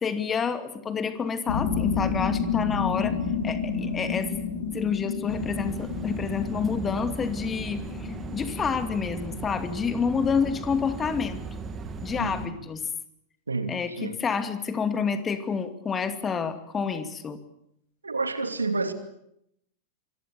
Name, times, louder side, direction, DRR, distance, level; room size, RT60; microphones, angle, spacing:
voice 1, 0.0-3.2 3.4-4.4 4.7-11.4 12.0-12.8 13.7-17.4, left 6 dB, 20° left, 2.5 m, -28 dB
sound 1, 1.5-10.4, left 5 dB, 65° left, 5.6 m, -31 dB
sound 2, 5.3-12.5, right 4 dB, 25° right, 2.5 m, -37 dB
voice 2, 12.2-12.5 13.5-14.2 18.0-18.9, right 3 dB, 75° right, 2.6 m, -29 dB
26.5 x 23.0 x 6.8 m
figure-of-eight pair, 90°, 0 cm